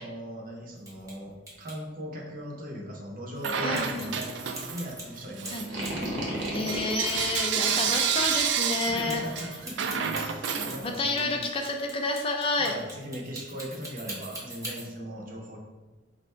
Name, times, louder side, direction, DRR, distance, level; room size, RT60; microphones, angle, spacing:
voice 1, 0.0-5.8 9.1-11.4 12.6-15.6, equal, 45° right, 0 dB, 0.7 m, -39 dB
sound 1, 0.8-1.1 1.5-1.7 3.7-6.1 6.4-14.9, right 1 dB, 15° right, 0.8 m, -42 dB
Bell / Coin (dropping), 3.4-4.9 5.3-11.3, right 7 dB, 65° right, 0.3 m, -30 dB
voice 2, 3.6-4.2 5.5-5.7 6.5-9.2 10.6-12.8, left 3 dB, 30° left, 2 dB, 0.3 m, -30 dB
sound 2, 5.6-7.1 8.9-9.4, right 1 dB, 85° right, 1.0 m, -33 dB
3.2 x 2.6 x 4.4 m, 1.2 s
head